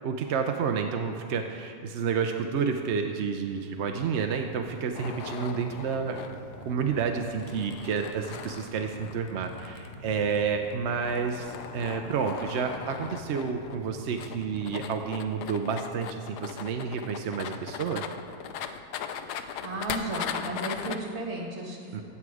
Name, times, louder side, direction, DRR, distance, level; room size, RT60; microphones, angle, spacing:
voice 1, 0.0-6.2 6.7-18.0 21.9-22.0, right 6 dB, 60° right, 5 dB, 0.7 m, -30 dB
sound 1, 3.5-15.0, left 1 dB, 40° left, 2.0 m, -47 dB
sound 2, 4.9-21.0, left 8 dB, 80° left, 1.2 m, -39 dB
voice 2, 19.6-22.0, right 2 dB, 45° right, -1 dB, 2.1 m, -34 dB
16.0 x 7.2 x 4.8 m, 2.4 s
omnidirectional pair, 1.7 m